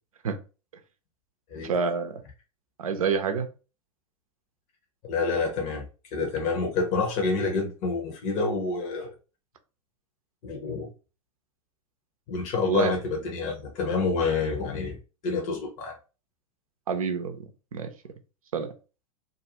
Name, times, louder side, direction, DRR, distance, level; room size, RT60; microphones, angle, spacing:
voice 1, 1.6-2.2 2.8-3.5 12.6-12.9 16.9-17.4 17.7-17.9 18.5-18.7, right 5 dB, 75° right, 0.5 m, -27 dB
voice 2, 5.0-5.8 6.1-9.1 10.4-10.9 12.3-15.0 15.2-15.9, left 4 dB, 40° left, 0.8 m, -28 dB
2.5 x 2.3 x 2.9 m
figure-of-eight pair, 95°, 18 cm